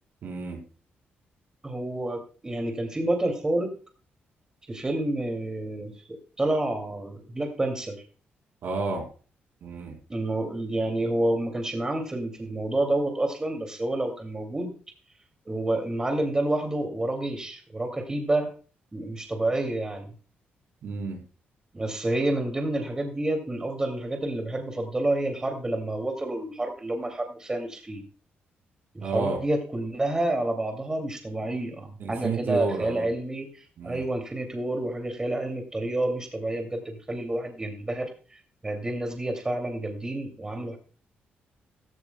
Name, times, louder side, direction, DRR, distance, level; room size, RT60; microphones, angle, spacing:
voice 1, 0.2-0.6 8.6-9.0 9.6-10.0 20.8-21.2 29.0-29.4 32.0-33.1 33.8-34.0, right 4 dB, 65° right, 3 dB, 3.8 m, -31 dB
voice 2, 1.6-3.7 4.7-8.0 10.1-14.7 15.5-18.5 18.9-20.1 21.7-28.0 28.9-40.8, right 1 dB, 15° right, 4 dB, 2.6 m, -29 dB
15.0 x 15.0 x 2.3 m, 0.38 s
cardioid pair, 125°, 4 cm